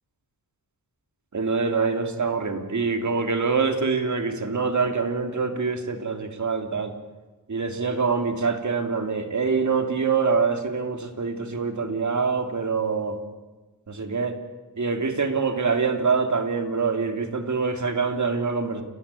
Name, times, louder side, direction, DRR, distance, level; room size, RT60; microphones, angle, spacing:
voice 1, 1.3-6.9 7.5-13.2 13.9-14.4 14.8-18.8, right 4 dB, 45° right, 6 dB, 3.2 m, -25 dB
29.5 x 14.5 x 9.9 m, 1.2 s
cardioid pair, 80°, 39 cm